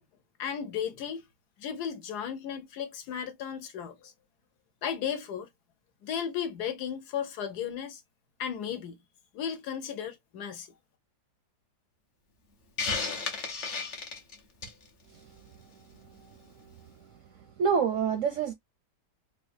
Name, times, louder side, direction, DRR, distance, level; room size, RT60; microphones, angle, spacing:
voice 1, 0.4-1.2 1.6-4.1 4.8-5.5 6.0-8.0 8.4-9.0 9.3-10.7, left 8 dB, 70° left, 1.2 m, -35 dB
Hiss, 12.8-14.8, left 4 dB, 45° left, 0.6 m, -33 dB
voice 2, 17.6-18.5, right 6 dB, 70° right, 0.8 m, -26 dB
4.1 x 2.3 x 2.5 m
omnidirectional pair, 1.8 m